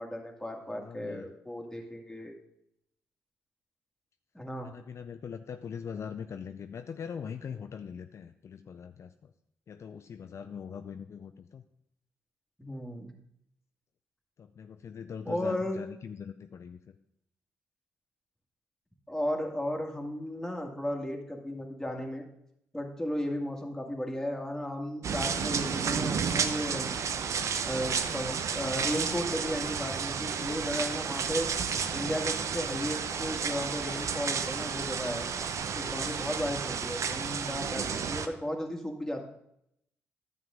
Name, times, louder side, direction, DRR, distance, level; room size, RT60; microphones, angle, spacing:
voice 1, 0.0-2.3 4.3-4.7 12.6-13.1 15.3-15.8 19.1-22.2 22.7-26.9 27.7-31.5 31.9-35.3 35.8-39.3, left 1 dB, 5° left, 1 dB, 2.0 m, -35 dB
voice 2, 0.7-1.3 4.6-9.3 9.7-11.6 14.4-16.9, left 7 dB, 50° left, 8 dB, 0.4 m, -42 dB
sound 1, 25.0-38.3, right 6 dB, 55° right, 0.6 m, -32 dB
10.5 x 7.1 x 3.7 m, 0.75 s
hypercardioid pair, 45°, 6 cm